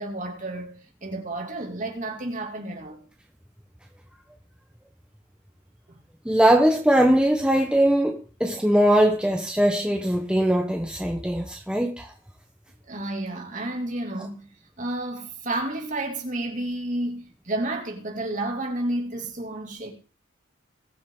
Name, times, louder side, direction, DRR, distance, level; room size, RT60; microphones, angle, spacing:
voice 1, 0.0-3.0 5.9-6.0 12.9-14.5 14.8-19.9, right 1 dB, 40° right, 2.7 m, -31 dB
voice 2, 6.2-12.1, right 1 dB, 5° right, 1.1 m, -21 dB
21.5 x 7.5 x 3.9 m
head